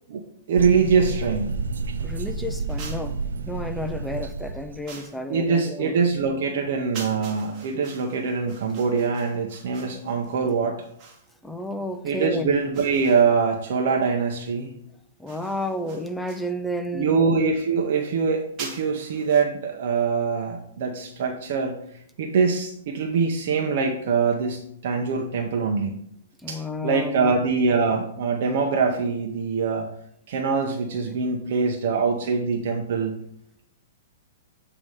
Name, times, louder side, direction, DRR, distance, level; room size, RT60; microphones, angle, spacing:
voice 1, 0.5-1.6 5.3-10.8 12.0-14.7 16.9-21.8 22.2-25.9 26.5-29.9 30.3-33.1, right 5 dB, 55° right, 2 dB, 0.8 m, -23 dB
sound 1, 0.5-4.9, right 3 dB, 90° right, 0.5 m, -30 dB
voice 2, 2.0-3.2 3.5-6.0 11.4-12.5 15.2-17.1 26.4-27.3, left 1 dB, ahead, 8 dB, 0.4 m, -31 dB
sound 2, 2.7-3.2 4.9-5.3 6.9-11.3 12.7-13.6 15.3-16.6 18.6-19.4, right 4 dB, 30° right, 1.2 m, -43 dB
8.4 x 2.9 x 4.8 m, 0.68 s
hypercardioid pair, 150°, 0 cm